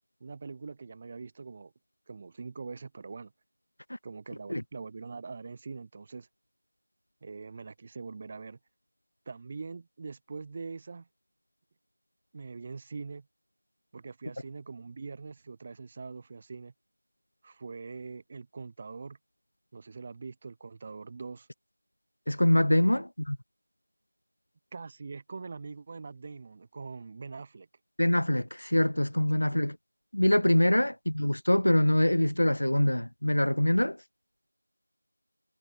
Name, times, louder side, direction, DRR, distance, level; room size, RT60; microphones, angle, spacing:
voice 1, 0.2-1.7 2.1-3.3 4.0-6.3 7.2-8.6 9.3-11.1 12.3-13.3 13.9-16.7 17.4-19.2 19.7-21.5 22.9-23.1 24.7-27.7 29.5-29.6 30.7-30.9, right 4 dB, 15° right, 7.4 m, -43 dB
voice 2, 22.3-23.4 28.0-29.8 30.1-34.0, left 1 dB, 65° left, 1.3 m, -24 dB
figure-of-eight pair, 175°, 0 cm